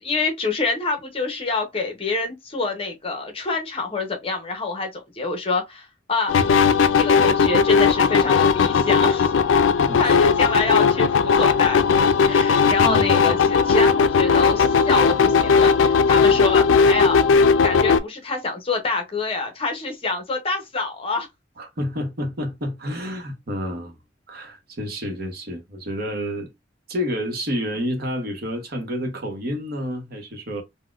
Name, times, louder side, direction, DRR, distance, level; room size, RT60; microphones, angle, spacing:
voice 1, 0.0-6.5 7.0-9.3 10.0-17.2 17.6-21.3, left 3 dB, 30° left, 0.7 m, -26 dB
sound 1, 6.3-18.0, left 5 dB, 80° left, 0.3 m, -17 dB
voice 2, 9.9-10.4 12.8-13.2 21.6-23.9 24.3-26.5 26.9-30.6, equal, 50° right, 0.9 m, -29 dB
3.9 x 2.1 x 2.3 m
head